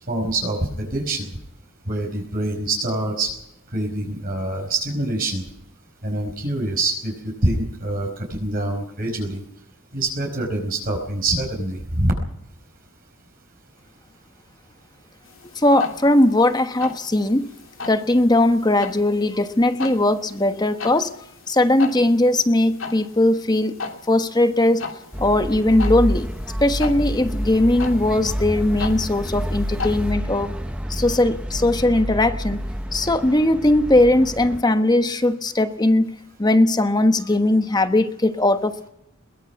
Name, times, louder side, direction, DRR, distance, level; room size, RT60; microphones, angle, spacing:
voice 1, 0.1-1.3 1.9-3.3 3.7-5.4 6.0-9.4 9.9-12.1, right 2 dB, 45° right, 1 dB, 4.9 m, -25 dB
sound 1, 15.3-30.1, left 4 dB, 70° left, 3.0 m, -37 dB
voice 2, 15.6-17.5 17.9-21.1 21.5-23.8 24.1-24.8 25.2-26.3 26.6-30.5 30.9-32.6 32.9-38.9, left 1 dB, 20° left, 9 dB, 1.2 m, -19 dB
sound 2, 25.1-34.6, equal, 5° right, 1.0 m, -28 dB
22.0 x 20.5 x 5.9 m, 0.79 s
head